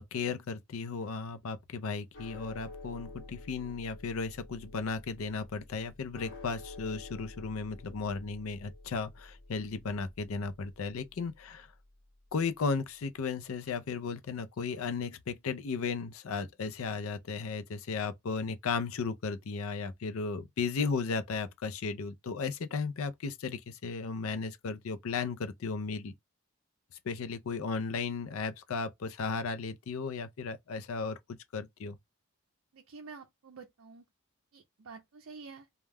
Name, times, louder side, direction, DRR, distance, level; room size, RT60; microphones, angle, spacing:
voice 1, 0.0-11.7 12.3-26.1 27.1-32.0, left 4 dB, 75° left, 0.4 m, -35 dB
sound 1, 2.1-12.6, left 2 dB, 55° left, 1.0 m, -50 dB
voice 2, 32.7-34.0 34.5-35.7, right 4 dB, 70° right, 0.5 m, -49 dB
2.3 x 2.1 x 3.2 m
head